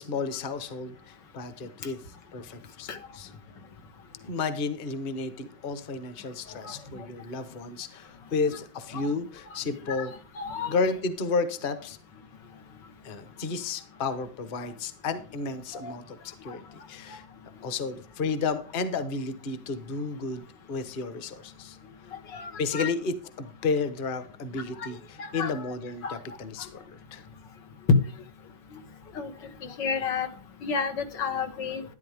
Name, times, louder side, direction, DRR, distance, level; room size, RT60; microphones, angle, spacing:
voice 1, 0.0-2.0 2.3-3.3 4.3-10.1 10.7-12.0 13.0-17.2 17.6-21.8 22.6-26.7 27.1-27.2, left 4 dB, 35° left, 11 dB, 1.1 m, -32 dB
voice 2, 10.4-10.7 15.7-15.9 22.3-22.9 25.2-25.5 26.0-26.1 27.9-28.0 29.2-29.3 29.6-30.3 30.6-31.8, left 4 dB, 75° left, 6 dB, 1.9 m, -28 dB
12.0 x 10.5 x 3.5 m, 0.38 s
omnidirectional pair, 1.9 m